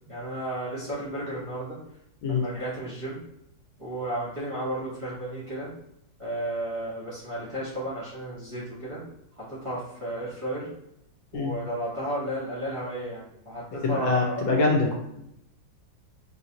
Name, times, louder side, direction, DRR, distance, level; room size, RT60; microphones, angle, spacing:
voice 1, 0.0-1.8 2.3-3.2 3.8-5.7 6.2-9.0 9.4-10.7 11.3-14.5, right 1 dB, 20° right, -10 dB, 1.3 m, -33 dB
voice 2, 13.8-14.9, left 3 dB, 80° left, -1 dB, 1.7 m, -24 dB
4.6 x 3.0 x 2.8 m, 0.78 s
omnidirectional pair, 2.1 m